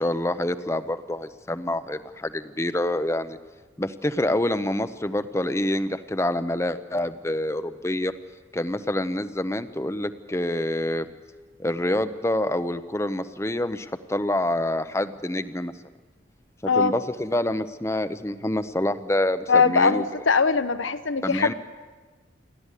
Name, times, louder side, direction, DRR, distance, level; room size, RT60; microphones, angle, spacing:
voice 1, 0.0-3.4 3.8-8.1 8.5-11.1 11.6-15.7 16.6-20.0 21.2-21.5, left 1 dB, 15° left, 11 dB, 0.7 m, -27 dB
voice 2, 19.5-21.5, left 5 dB, 85° left, 11 dB, 1.0 m, -21 dB
29.5 x 12.5 x 8.3 m, 1.3 s
head